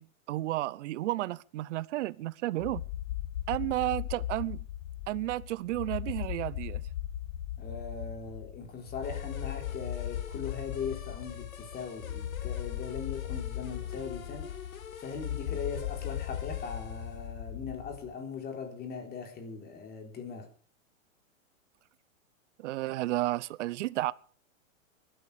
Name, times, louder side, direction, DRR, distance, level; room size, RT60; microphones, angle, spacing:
voice 1, 0.0-2.8 3.5-4.6 5.1-6.8 22.6-24.1, right 17 dB, 60° right, 0.9 m, -32 dB
sound 1, 2.6-18.1, left 12 dB, 60° left, 1.4 m, -38 dB
voice 2, 7.6-14.5 15.0-20.5, left 5 dB, 25° left, 4.0 m, -40 dB
sound 2, 9.0-17.3, left 8 dB, 90° left, 2.6 m, -48 dB
20.5 x 12.5 x 5.1 m
hypercardioid pair, 135°, 41 cm